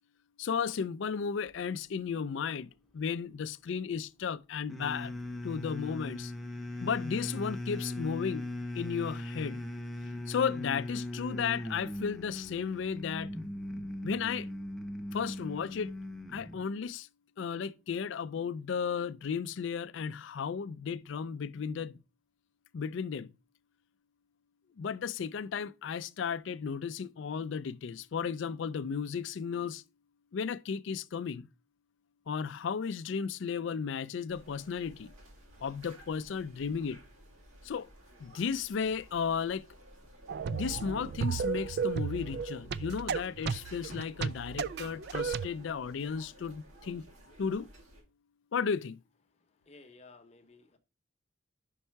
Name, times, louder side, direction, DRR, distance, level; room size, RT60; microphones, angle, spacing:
voice 1, 0.4-5.1 5.4-6.3 6.8-8.4 8.7-9.6 10.3-13.3 14.0-14.5 15.1-15.9 16.3-17.1 17.4-22.0 22.7-23.3 24.8-29.8 30.3-31.5 32.3-35.1 35.6-37.0 37.6-37.9 38.2-39.7 40.5-47.0 47.4-47.7 48.5-49.0, left 6 dB, 65° left, 0.4 m, -34 dB
sound 1, 4.7-16.6, left 1 dB, ahead, 0.7 m, -39 dB
sound 2, 34.3-48.0, right 1 dB, 90° right, 2.0 m, -55 dB
sound 3, 40.3-45.5, right 6 dB, 50° right, 0.3 m, -34 dB
voice 2, 49.7-50.8, left 3 dB, 30° left, 0.8 m, -55 dB
5.5 x 5.4 x 4.5 m
head